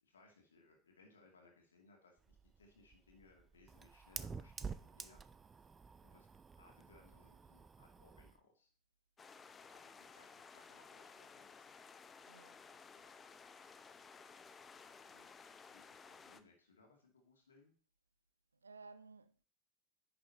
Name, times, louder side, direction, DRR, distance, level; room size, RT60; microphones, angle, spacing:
voice 1, 0.0-5.2 6.0-6.3 6.6-8.7 9.6-11.7 12.9-13.1 15.0-17.7, left 3 dB, 80° left, 2.2 m, -67 dB
Fire, 2.2-8.4, right 5 dB, 25° right, 0.5 m, -50 dB
sound 1, 9.2-16.4, left 5 dB, 25° left, 0.7 m, -57 dB
voice 2, 12.3-12.6 18.5-19.4, right 4 dB, 85° right, 0.6 m, -57 dB
10.5 x 6.7 x 2.9 m
figure-of-eight pair, 75°, 0 cm